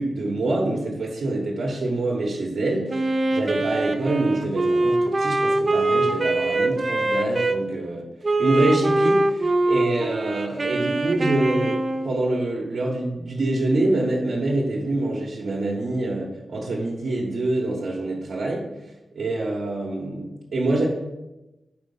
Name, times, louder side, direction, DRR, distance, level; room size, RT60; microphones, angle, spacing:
voice 1, 0.0-8.0 8.4-18.6 19.1-20.9, right 2 dB, 75° right, -5 dB, 1.3 m, -26 dB
Wind instrument woodwind instrument, 2.9-7.6 8.2-12.2, right 2 dB, 35° right, 0.5 m, -23 dB
5.2 x 4.4 x 5.5 m, 0.99 s
wide cardioid pair, 110°, 0 cm